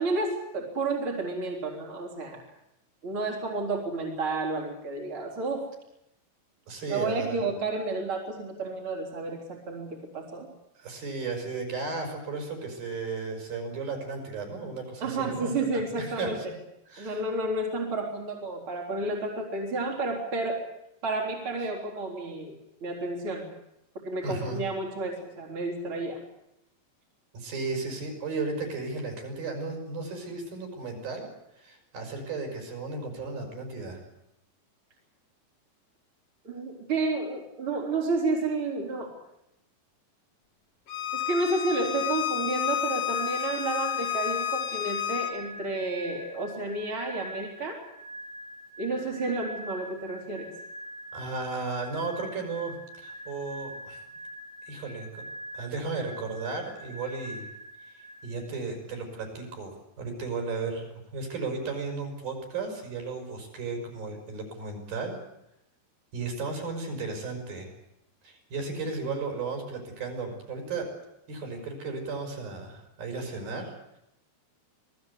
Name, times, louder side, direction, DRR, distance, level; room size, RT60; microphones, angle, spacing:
voice 1, 0.0-2.4 3.0-5.7 6.9-10.5 15.0-16.4 17.0-20.6 21.0-22.6 22.8-23.5 24.0-26.2 36.4-39.1 41.1-47.8 48.8-50.5, right 2 dB, 30° right, -1 dB, 4.3 m, -31 dB
voice 2, 6.7-7.4 10.8-15.6 16.0-16.5 16.9-17.2 24.2-24.6 27.3-31.3 31.6-34.0 51.1-54.0 54.7-55.2 55.5-57.5 57.9-60.8 61.1-65.2 66.1-67.7 68.2-70.9 71.3-74.0, right 4 dB, 55° right, 4 dB, 7.1 m, -34 dB
Bowed string instrument, 40.9-45.3, left 11 dB, 55° left, 2.1 m, -30 dB
sound 1, 43.1-58.7, equal, 90° right, 8.6 m, -44 dB
27.5 x 19.0 x 8.3 m, 0.83 s
omnidirectional pair, 5.2 m